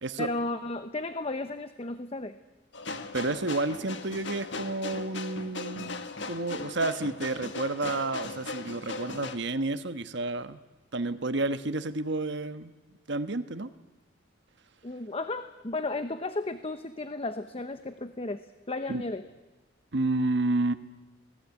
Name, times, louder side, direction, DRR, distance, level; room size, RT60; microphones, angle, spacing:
voice 1, 0.2-2.4 14.8-18.4 18.7-19.2, left 2 dB, 30° left, 10 dB, 0.9 m, -34 dB
sound 1, 2.7-9.4, left 3 dB, 70° left, 1.6 m, -38 dB
voice 2, 3.1-10.6 10.9-12.7 13.1-13.7 18.9-19.0 19.9-20.7, right 2 dB, 65° right, 10 dB, 1.3 m, -30 dB
25.0 x 19.0 x 8.4 m, 1.1 s
head